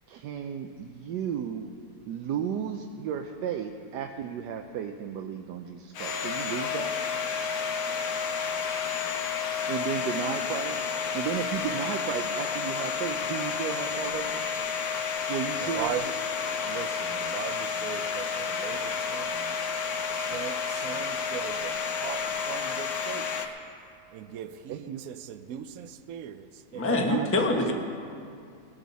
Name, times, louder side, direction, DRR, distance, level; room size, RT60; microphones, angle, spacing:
voice 1, 0.1-1.7 2.1-7.0 9.7-14.4 15.3-15.9 24.7-25.0 26.9-27.3, right 8 dB, 85° right, 1.2 m, -34 dB
Domestic sounds home sounds, 5.9-23.5, left 6 dB, 65° left, 1.3 m, -31 dB
voice 2, 15.6-19.7 20.1-23.4 24.1-27.6, right 10 dB, 65° right, 0.9 m, -39 dB
voice 3, 26.7-27.7, left 2 dB, 10° left, 0.8 m, -25 dB
19.5 x 11.0 x 4.1 m
omnidirectional pair, 1.8 m